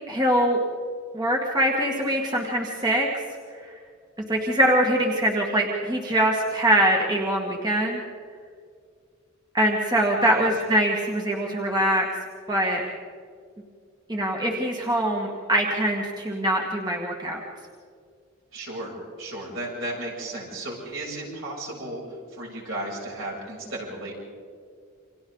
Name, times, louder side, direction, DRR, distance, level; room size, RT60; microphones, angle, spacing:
voice 1, 0.1-0.6 1.1-3.2 3.6-3.7 4.3-8.0 9.5-12.1 12.5-12.8 14.1-17.4, right 1 dB, 20° right, -1 dB, 1.9 m, -23 dB
voice 2, 18.5-24.1, right 1 dB, 65° right, -3 dB, 7.8 m, -34 dB
29.0 x 26.0 x 4.0 m, 2.2 s
head